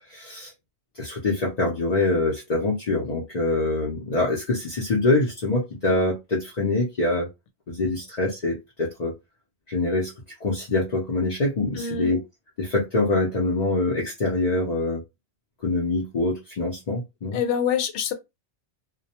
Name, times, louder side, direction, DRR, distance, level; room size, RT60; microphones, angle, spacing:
voice 1, 0.1-0.5 1.0-7.3 7.7-9.1 9.7-10.1 10.4-12.2 12.6-15.0 15.6-17.4, left 2 dB, 45° left, 0.6 m, -24 dB
voice 2, 11.7-12.1 17.3-18.1, left 7 dB, 90° left, 0.9 m, -25 dB
2.3 x 2.1 x 2.8 m
omnidirectional pair, 1.2 m